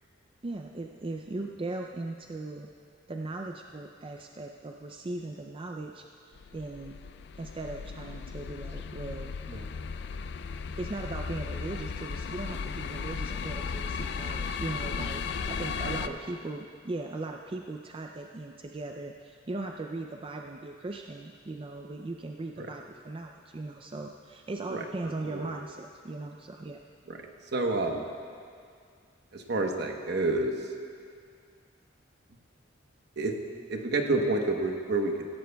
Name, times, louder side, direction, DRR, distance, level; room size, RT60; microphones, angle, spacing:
voice 1, 0.4-2.7 3.1-7.0 7.4-9.3 10.8-26.8, right 2 dB, 30° right, 3 dB, 0.4 m, -38 dB
sound 1, 6.4-16.1, left 5 dB, 65° left, 0.4 m, -36 dB
voice 2, 24.7-25.6 27.1-27.2 27.5-28.0 29.3-30.5 33.2-33.3 33.7-35.1, right 2 dB, 60° right, 3 dB, 1.1 m, -29 dB
16.5 x 15.0 x 2.3 m, 2.2 s
head